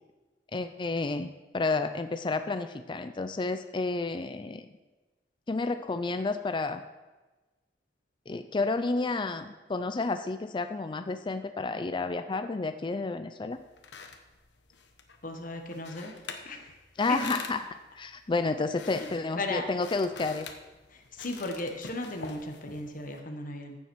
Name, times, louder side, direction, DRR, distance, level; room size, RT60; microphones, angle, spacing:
voice 1, 0.5-4.7 5.5-6.8 8.3-13.6 17.0-20.5, left 3 dB, 25° left, 9 dB, 0.4 m, -31 dB
sound 1, 13.5-23.2, left 5 dB, 75° left, 1.1 m, -47 dB
voice 2, 15.2-16.1 16.4-16.8 17.1-17.2 18.9-19.1 19.4-19.6 20.9-23.8, left 2 dB, 50° left, 3 dB, 1.3 m, -36 dB
15.0 x 7.2 x 4.6 m, 1.2 s
head